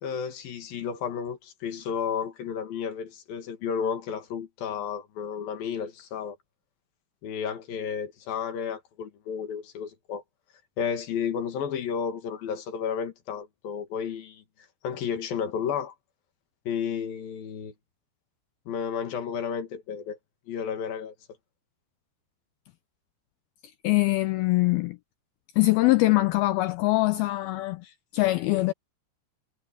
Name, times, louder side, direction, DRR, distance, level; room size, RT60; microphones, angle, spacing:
voice 1, 0.0-6.4 7.2-10.2 10.8-14.4 14.8-15.9 16.7-17.7 18.7-20.2 20.5-21.1, left 7 dB, 60° left, 3.5 m, -32 dB
voice 2, 23.8-25.0 25.6-28.7, left 20 dB, 80° left, 2.2 m, -23 dB
omnidirectional pair, 4.9 m